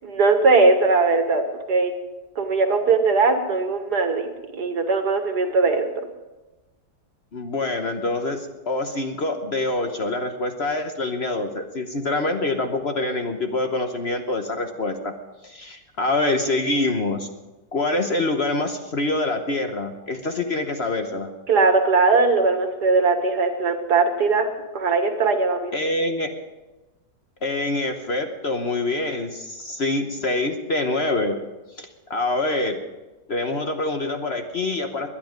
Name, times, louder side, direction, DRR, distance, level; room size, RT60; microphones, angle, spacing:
voice 1, 0.0-1.4 1.7-1.9 2.4-5.8 21.5-24.5 24.7-25.7, right 3 dB, 70° right, 6 dB, 2.1 m, -19 dB
voice 2, 7.3-15.1 15.4-17.3 17.7-21.3 25.7-26.3 27.4-31.4 31.8-32.8 33.3-35.1, left 2 dB, 45° left, 5 dB, 1.1 m, -25 dB
21.0 x 10.5 x 5.2 m, 1.1 s
omnidirectional pair, 1.8 m